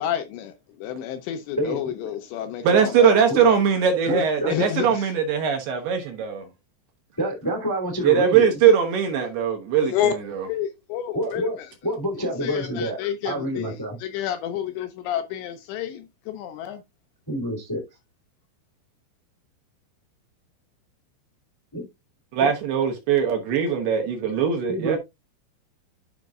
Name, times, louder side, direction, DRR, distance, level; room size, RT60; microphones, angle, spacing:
voice 1, 0.0-3.1 4.5-5.1 9.8-10.1 10.4-11.7 12.2-16.8, left 10 dB, 80° left, 2.7 m, -30 dB
voice 2, 1.6-1.9 3.3-3.5 4.0-4.6 7.2-8.6 11.1-11.6 11.8-13.0 13.2-14.0 17.3-17.8 21.7-21.9 22.4-22.5 24.7-25.0, equal, 15° left, 0.7 m, -27 dB
voice 3, 2.6-6.4 8.0-10.5 22.3-25.0, right 7 dB, 70° right, 2.5 m, -21 dB
12.0 x 5.2 x 2.4 m
omnidirectional pair, 5.6 m